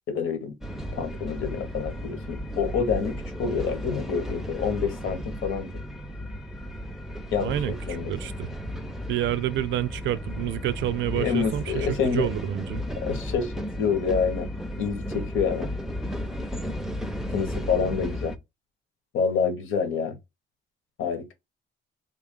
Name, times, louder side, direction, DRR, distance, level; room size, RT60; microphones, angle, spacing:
voice 1, 0.1-0.5 0.9-5.7 7.3-8.1 11.2-12.3 13.0-14.5 14.8-15.7 17.3-18.3 19.1-20.2 21.0-21.3, left 6 dB, 85° left, 1.4 m, -27 dB
sound 1, 0.6-18.4, equal, ahead, 0.6 m, -34 dB
voice 2, 7.4-8.6 9.1-12.8, right 12 dB, 70° right, 0.5 m, -28 dB
3.6 x 2.4 x 3.6 m
cardioid pair, 90°, 20 cm